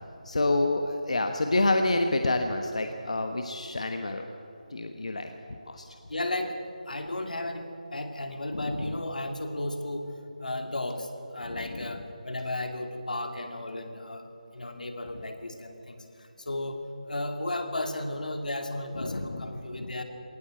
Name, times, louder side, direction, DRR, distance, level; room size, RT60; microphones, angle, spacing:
voice 1, 0.2-4.3 4.7-5.8 8.5-9.0 11.4-11.9 19.0-20.0, left 2 dB, 55° left, 5 dB, 1.2 m, -29 dB
voice 2, 6.1-6.6 6.9-10.1 10.4-14.3 14.5-16.1 16.4-20.0, left 1 dB, 85° left, 5 dB, 2.7 m, -34 dB
19.0 x 18.5 x 7.7 m, 2.9 s
figure-of-eight pair, 180°, 4 cm